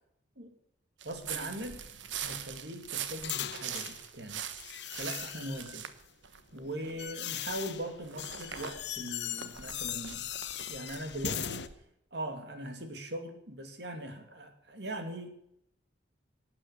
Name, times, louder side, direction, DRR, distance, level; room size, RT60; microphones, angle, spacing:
voice 1, 1.0-1.8 2.1-4.4 4.9-5.9 6.5-10.3 10.7-11.7 12.1-15.3, right 1 dB, 65° right, 6 dB, 2.6 m, -40 dB
sound 1, 1.0-7.1 7.5-11.8, right 9 dB, 90° right, 1.2 m, -42 dB
sound 2, 1.6-4.0 4.6-5.8 6.5-11.7, left 10 dB, 70° left, 1.0 m, -39 dB
18.0 x 8.7 x 7.0 m, 0.77 s
head